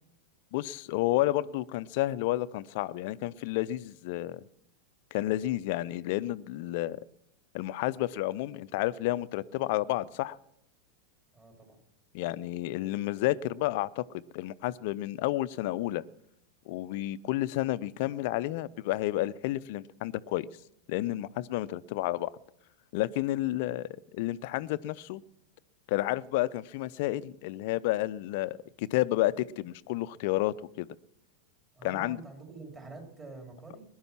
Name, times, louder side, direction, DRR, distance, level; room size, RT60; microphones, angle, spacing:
voice 1, 0.5-4.4 5.1-7.0 7.5-10.4 12.1-16.0 16.7-20.5 20.9-22.3 22.9-25.2 25.9-30.9 31.8-32.2, left 16 dB, 50° left, 18 dB, 0.6 m, -31 dB
voice 2, 11.3-11.8 31.8-33.8, right 3 dB, 20° right, 2 dB, 3.8 m, -46 dB
20.5 x 11.0 x 5.9 m, 0.77 s
figure-of-eight pair, 90°, 0 cm